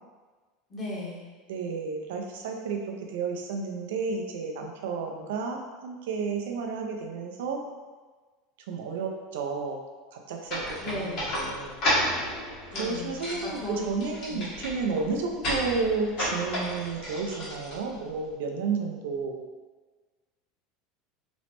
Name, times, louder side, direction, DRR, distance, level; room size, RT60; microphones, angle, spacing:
voice 1, 0.7-1.2 10.8-11.3 12.7-13.1 13.4-13.9 14.3-14.5, left 1 dB, 30° left, -5 dB, 0.9 m, -35 dB
voice 2, 1.5-7.6 8.7-9.8 10.1-11.8 12.8-19.4, right 4 dB, 80° right, 2 dB, 0.4 m, -32 dB
sound 1, 10.5-18.3, equal, 55° left, 1.2 m, -32 dB
3.0 x 2.0 x 2.9 m, 1.4 s
supercardioid pair, 105°, 0 cm